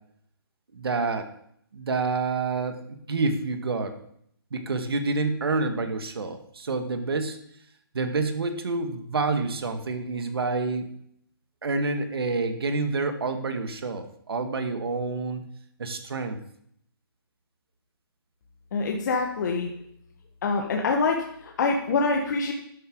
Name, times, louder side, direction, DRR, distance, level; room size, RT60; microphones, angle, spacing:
voice 1, 0.7-1.3 1.7-3.9 4.5-7.4 7.9-10.9 11.6-15.4 15.8-16.4, right 3 dB, 80° right, 7 dB, 2.0 m, -28 dB
voice 2, 18.7-19.7 20.4-22.5, left 4 dB, 50° left, 1 dB, 1.5 m, -25 dB
12.5 x 11.0 x 3.9 m, 0.69 s
hypercardioid pair, 160°, 13 cm